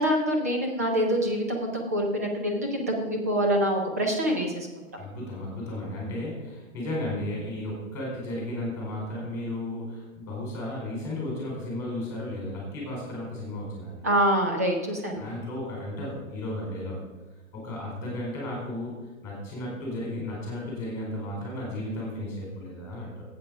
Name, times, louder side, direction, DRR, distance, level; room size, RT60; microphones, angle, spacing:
voice 1, 0.0-4.7 14.0-15.3, equal, 10° right, 1 dB, 0.5 m, -25 dB
voice 2, 5.0-14.0 15.2-17.1 17.5-23.2, left 1 dB, 5° left, -3 dB, 4.2 m, -34 dB
12.0 x 8.6 x 5.3 m, 1.2 s
hypercardioid pair, 175°, 41 cm